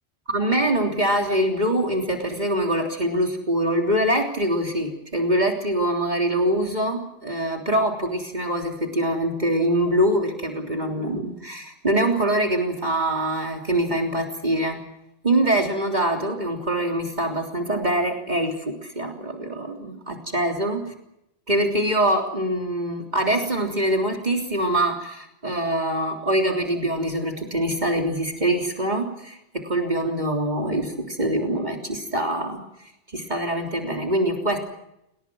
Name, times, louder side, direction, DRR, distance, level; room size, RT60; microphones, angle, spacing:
voice 1, 0.3-14.8 15.2-20.8 21.5-29.4 29.6-32.6 33.1-34.6, right 1 dB, 40° right, 2 dB, 3.6 m, -24 dB
28.5 x 19.5 x 6.3 m, 0.81 s
omnidirectional pair, 1.1 m